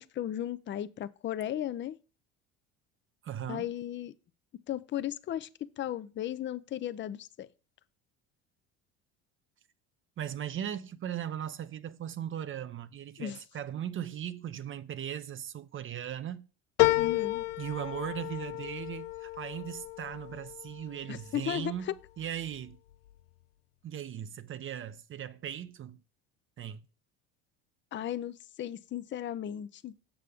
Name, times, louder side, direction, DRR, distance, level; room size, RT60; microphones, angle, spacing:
voice 1, 0.0-2.0 3.5-4.1 4.7-7.5 13.2-13.4 16.9-17.5 21.1-21.9 27.9-29.9, left 11 dB, 30° left, 0.5 m, -35 dB
voice 2, 3.2-3.7 10.2-16.4 17.6-22.8 23.8-26.0 26.6-26.8, right 10 dB, 35° right, 0.6 m, -38 dB
sound 1, 16.8-21.5 22.0-22.7 23.1-23.2, left 20 dB, 85° left, 0.5 m, -31 dB
6.9 x 6.6 x 3.5 m
hypercardioid pair, 75°, 37 cm